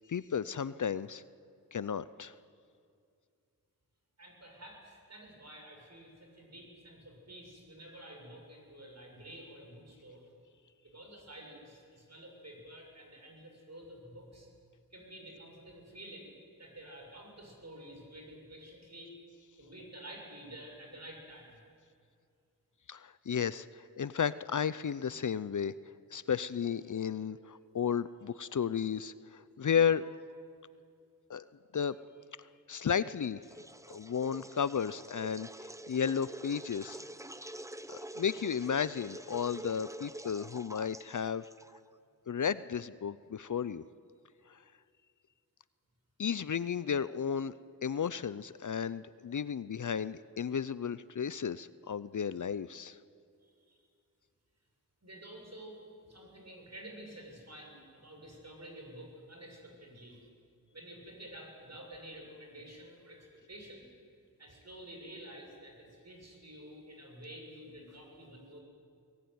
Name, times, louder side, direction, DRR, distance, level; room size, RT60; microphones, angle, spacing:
voice 1, 0.1-1.2 1.7-2.3 22.9-25.7 26.1-30.1 31.3-31.4 31.7-32.0 32.7-33.4 33.9-37.0 37.9-41.4 42.3-43.8 44.5-44.6 46.2-47.5 47.8-53.0, left 7 dB, 55° left, 16 dB, 0.6 m, -33 dB
voice 2, 4.2-10.2 10.8-14.5 14.9-16.3 16.6-19.2 19.6-21.6 30.0-30.2 53.4-53.8 55.0-60.2 60.7-63.9 64.4-68.6, right 1 dB, 45° right, 1 dB, 7.1 m, -50 dB
sound 1, 33.4-42.0, right 1 dB, 10° right, 0.8 m, -47 dB
22.5 x 18.5 x 9.5 m, 2.3 s
wide cardioid pair, 55°, 35 cm